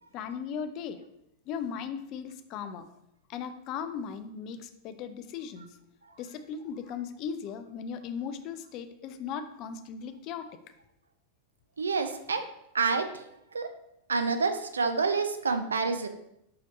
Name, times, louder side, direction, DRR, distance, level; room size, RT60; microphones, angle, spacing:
voice 1, 0.1-1.0 1.5-2.9 3.3-5.8 6.2-10.5, left 7 dB, 40° left, 9 dB, 0.3 m, -37 dB
voice 2, 11.8-12.4 12.7-13.3 13.5-13.7 14.1-16.1, right 4 dB, 75° right, 8 dB, 0.3 m, -28 dB
4.8 x 3.1 x 2.6 m, 0.80 s
figure-of-eight pair, 90°, 0 cm